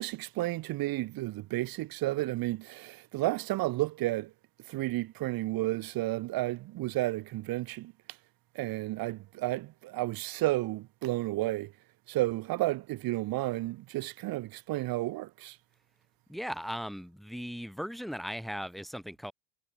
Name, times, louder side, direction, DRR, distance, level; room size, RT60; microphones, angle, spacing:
voice 1, 0.0-4.3 4.7-7.9 8.5-11.7 12.1-15.6, right 17 dB, 55° right, 6.5 m, -32 dB
voice 2, 16.3-19.3, equal, ahead, 7.7 m, -38 dB
supercardioid pair, 110°, 42 cm